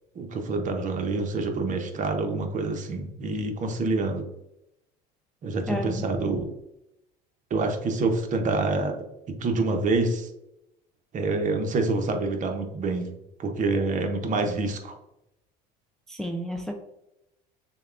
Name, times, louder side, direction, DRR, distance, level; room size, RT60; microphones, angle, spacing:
voice 1, 0.1-4.3 5.4-6.5 7.5-9.0 9.3-10.3 11.1-13.1 13.4-15.0, right 3 dB, 40° right, 5 dB, 0.8 m, -27 dB
voice 2, 5.7-6.0 16.1-16.7, equal, ahead, 3 dB, 0.4 m, -31 dB
6.6 x 2.2 x 2.5 m, 0.87 s
supercardioid pair, 90°, 20 cm